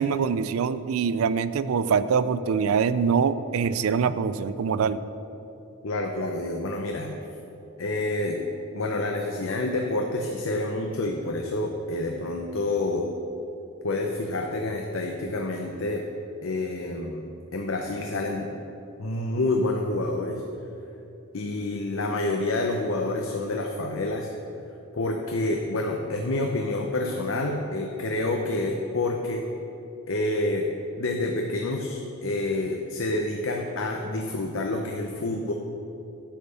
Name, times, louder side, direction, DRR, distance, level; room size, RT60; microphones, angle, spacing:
voice 1, 0.0-5.0, right 6 dB, 75° right, 14 dB, 0.4 m, -24 dB
voice 2, 5.8-7.1 7.8-8.4 8.7-13.1 13.8-16.1 16.4-18.5 19.0-20.4 21.3-24.3 24.9-29.4 30.1-30.7 31.0-35.5, left 2 dB, 65° left, 2 dB, 0.7 m, -28 dB
10.0 x 5.4 x 6.8 m, 2.8 s
head